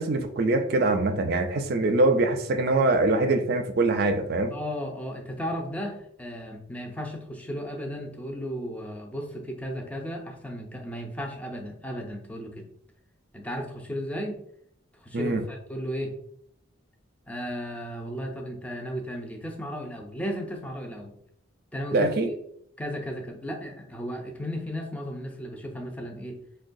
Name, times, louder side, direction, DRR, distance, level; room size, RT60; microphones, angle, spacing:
voice 1, 0.0-4.6 15.1-15.4 21.9-22.3, right 2 dB, 50° right, 7 dB, 0.4 m, -23 dB
voice 2, 4.5-12.7 13.3-14.4 15.0-16.1 17.3-21.1 21.7-22.1 22.8-26.4, equal, 5° left, 2 dB, 0.4 m, -35 dB
4.6 x 2.2 x 2.5 m, 0.71 s
head